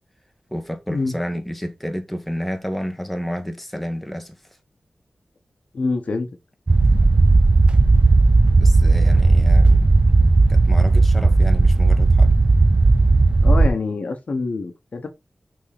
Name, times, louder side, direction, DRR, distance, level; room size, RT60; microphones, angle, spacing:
voice 1, 0.5-4.3 8.6-9.9 10.5-12.3, equal, 5° left, 1.2 m, -30 dB
voice 2, 5.7-6.3 13.4-15.1, left 3 dB, 70° left, 1.1 m, -25 dB
sound 1, 6.7-13.7, right 3 dB, 40° right, 0.6 m, -14 dB
6.0 x 3.8 x 4.1 m
wide cardioid pair, 85°, 2 cm